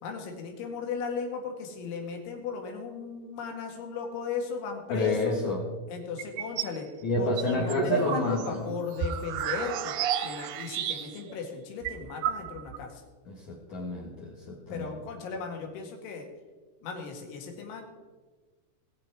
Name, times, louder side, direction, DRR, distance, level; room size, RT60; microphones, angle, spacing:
voice 1, 0.0-5.4 5.9-6.9 7.2-13.0 14.7-16.3 16.8-17.8, left 5 dB, 85° left, 2 dB, 4.4 m, -36 dB
voice 2, 4.9-5.6 7.0-8.6 13.3-14.9, left 2 dB, 60° left, -2 dB, 2.2 m, -29 dB
sound 1, 6.2-6.8 7.2-11.3 11.6-11.7 11.9-12.8, right 9 dB, 80° right, 2.2 m, -31 dB
20.0 x 7.9 x 4.8 m, 1.3 s
omnidirectional pair, 5.3 m